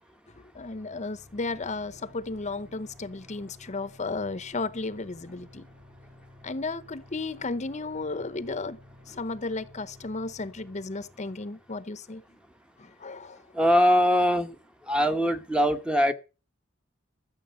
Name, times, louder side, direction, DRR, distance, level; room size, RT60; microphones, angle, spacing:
voice 1, 0.5-5.7 6.4-8.8 9.1-12.2 12.8-13.4, left 3 dB, 35° left, 0.8 m, -34 dB
sound 1, 0.7-12.1, left 1 dB, 65° right, 6.3 m, -54 dB
voice 2, 13.5-14.5 14.9-16.1, equal, 5° right, 1.0 m, -22 dB
14.0 x 7.4 x 6.8 m
head